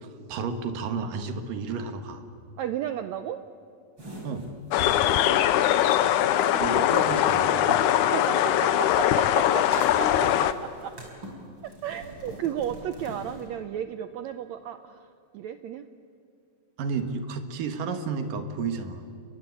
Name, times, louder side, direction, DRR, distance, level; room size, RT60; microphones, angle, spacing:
voice 1, 0.0-2.2 4.2-4.5 6.6-7.9 16.8-19.0, right 5 dB, 70° right, 7 dB, 3.3 m, -32 dB
voice 2, 2.6-3.4 4.8-5.7 6.5-7.4 8.1-11.0 11.6-15.9, right 10 dB, 90° right, 10 dB, 1.5 m, -35 dB
sound 1, 4.0-8.5 8.8-13.5, right 1 dB, 30° right, 5.2 m, -44 dB
sound 2, 4.7-10.5, left 11 dB, 75° left, 2.0 m, -22 dB
30.0 x 22.5 x 8.3 m, 2.3 s
omnidirectional pair, 4.2 m